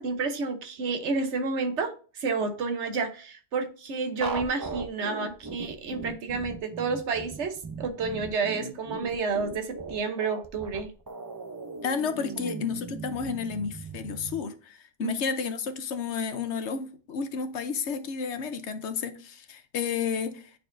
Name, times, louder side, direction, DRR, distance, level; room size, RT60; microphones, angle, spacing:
voice 1, 0.0-10.9 12.3-12.6 15.0-15.1, right 4 dB, 75° right, 1.2 m, -30 dB
sound 1, 4.2-14.4, right 3 dB, 30° right, 0.4 m, -38 dB
voice 2, 11.8-20.6, left 6 dB, 75° left, 1.0 m, -32 dB
9.0 x 4.3 x 2.6 m
omnidirectional pair, 1.2 m